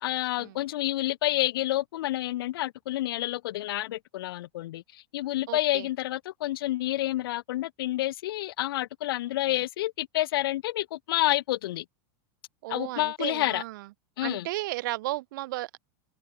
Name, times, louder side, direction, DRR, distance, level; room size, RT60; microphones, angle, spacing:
voice 1, 0.0-11.9 12.7-13.6 14.2-14.5, left 15 dB, 65° left, 1.7 m, -29 dB
voice 2, 5.5-5.9 12.6-13.9 14.2-15.8, right 18 dB, 55° right, 6.6 m, -34 dB
open air
supercardioid pair, 175°, 13 cm